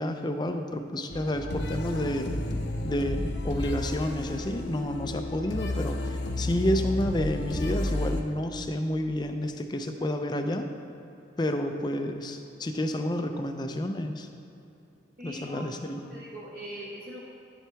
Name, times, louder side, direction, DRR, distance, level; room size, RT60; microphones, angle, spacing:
voice 1, 0.0-2.4 2.8-10.7 11.4-14.3 15.2-16.0, left 1 dB, 20° left, 6 dB, 0.4 m, -30 dB
sound 1, 1.1-8.2, left 1 dB, 60° left, 0.7 m, -32 dB
voice 2, 15.2-17.2, equal, 50° right, -6 dB, 1.1 m, -41 dB
10.5 x 7.5 x 3.4 m, 2.9 s
head